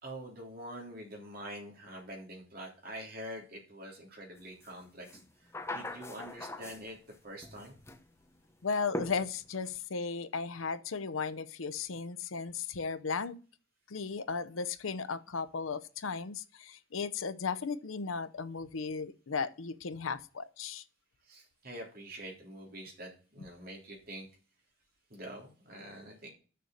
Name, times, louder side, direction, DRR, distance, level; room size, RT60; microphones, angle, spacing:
voice 1, 0.0-7.0 7.2-7.8 21.2-24.3 25.1-26.3, right 1 dB, 50° right, 3.4 m, -45 dB
sound 1, 4.6-4.7 5.0-7.1 7.4-8.0 8.9-9.7, left 1 dB, 15° left, 0.8 m, -41 dB
voice 2, 8.6-13.4 13.9-20.8, left 5 dB, 90° left, 0.7 m, -36 dB
6.7 x 6.6 x 6.5 m
head